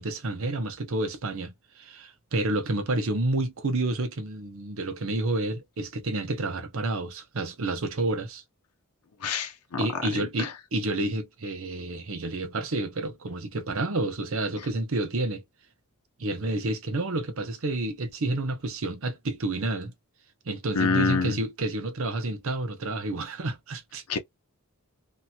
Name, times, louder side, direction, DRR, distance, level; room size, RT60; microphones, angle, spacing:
voice 1, 0.0-8.4 9.2-9.5 9.8-15.4 16.2-19.9 20.5-24.0, right 2 dB, 65° right, 0.8 m, -29 dB
voice 2, 9.2-9.8 10.1-10.5 20.7-21.4 24.1-24.2, left 4 dB, 90° left, 0.7 m, -27 dB
2.8 x 2.7 x 2.3 m
head